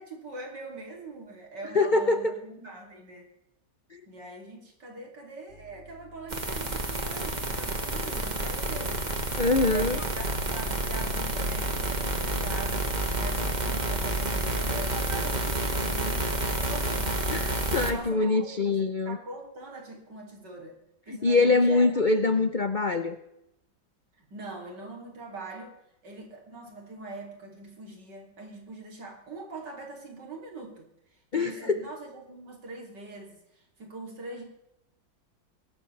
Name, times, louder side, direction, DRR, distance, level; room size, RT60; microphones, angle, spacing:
voice 1, 0.0-3.3 4.1-9.0 9.6-18.8 19.0-20.8 21.1-21.9 24.2-25.7 26.0-30.9 31.3-34.4, right 2 dB, 65° right, 1 dB, 3.6 m, -42 dB
voice 2, 1.7-2.4 3.9-4.0 9.4-10.0 17.3-19.2 21.2-23.2 31.3-31.8, left 3 dB, 85° left, 9 dB, 0.4 m, -24 dB
sound 1, 5.5-17.3 18.2-18.5, equal, 40° right, 2.6 m, -47 dB
sound 2, 6.3-17.9, right 1 dB, 25° right, 1.7 m, -29 dB
23.5 x 12.5 x 3.3 m, 0.84 s
omnidirectional pair, 2.0 m